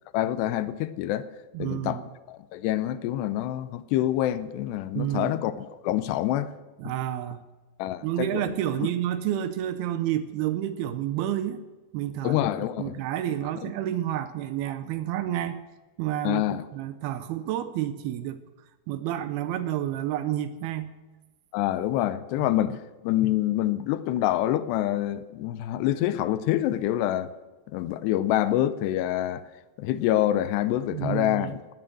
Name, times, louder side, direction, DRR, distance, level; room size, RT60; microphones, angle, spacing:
voice 1, 0.1-1.3 1.6-2.0 2.3-6.5 7.8-8.5 8.8-8.9 12.2-13.0 13.6-13.7 16.2-16.6 21.5-27.3 27.7-29.5 29.8-31.6, left 13 dB, 80° left, 2.8 m, -26 dB
voice 2, 1.5-2.0 4.9-5.3 6.8-7.4 8.0-11.6 11.9-12.5 12.8-15.6 16.0-18.4 18.9-20.9 30.9-31.6, right 12 dB, 80° right, 2.4 m, -29 dB
18.5 x 9.3 x 7.6 m
omnidirectional pair, 4.9 m